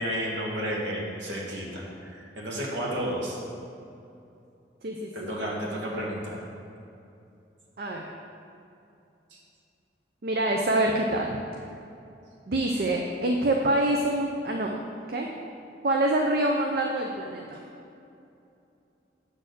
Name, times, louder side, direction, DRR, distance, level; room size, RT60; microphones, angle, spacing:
voice 1, 0.0-3.4 5.1-6.4 9.3-9.4, equal, 85° right, -3 dB, 1.7 m, -32 dB
voice 2, 4.8-5.3 7.8-8.1 10.2-11.4 12.5-14.8 15.1-15.3 15.8-17.6, right 1 dB, 55° right, 1 dB, 0.5 m, -26 dB
7.6 x 4.3 x 6.7 m, 2.7 s
head